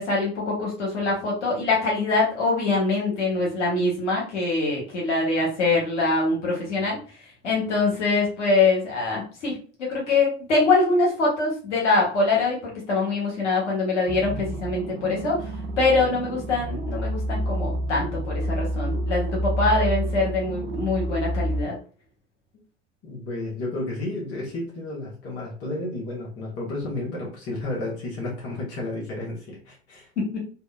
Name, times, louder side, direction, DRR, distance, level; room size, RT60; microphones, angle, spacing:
voice 1, 0.0-7.0 7.4-15.4 15.8-21.8 30.2-30.3, left 3 dB, 80° left, -3 dB, 0.9 m, -24 dB
sound 1, 14.1-21.6, right 1 dB, 30° right, 0.5 m, -29 dB
voice 2, 23.0-30.1, left 2 dB, 40° left, -4 dB, 0.9 m, -32 dB
2.7 x 2.1 x 2.2 m, 0.39 s
hypercardioid pair, 75°, 35 cm